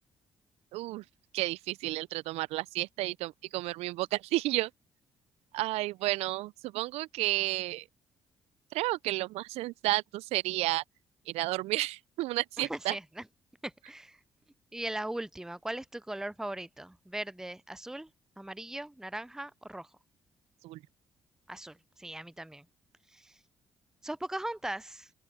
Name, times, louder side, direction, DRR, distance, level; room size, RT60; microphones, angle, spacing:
voice 1, 0.7-1.0 1.3-4.7 5.5-7.8 8.7-10.8 11.3-13.0 20.6-20.8, right 18 dB, 70° right, 0.7 m, -31 dB
voice 2, 12.6-13.2 13.6-14.2 14.7-18.1 18.4-19.9 21.5-22.7 23.1-23.4 24.0-25.1, right 1 dB, 5° right, 0.5 m, -39 dB
open air
hypercardioid pair, 45°, 11 cm